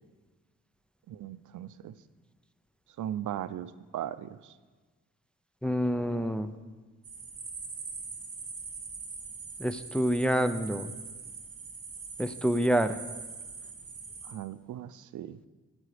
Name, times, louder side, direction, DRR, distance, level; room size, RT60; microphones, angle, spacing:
voice 1, 1.1-2.0 3.0-4.6 14.2-15.4, right 11 dB, 80° right, 14 dB, 0.5 m, -38 dB
voice 2, 5.6-6.5 9.6-10.9 12.2-13.0, equal, 5° left, 8 dB, 0.4 m, -27 dB
sound 1, 7.0-14.3, right 4 dB, 45° right, 1.9 m, -42 dB
14.0 x 9.0 x 5.0 m, 1.4 s
wide cardioid pair, 140°, 30 cm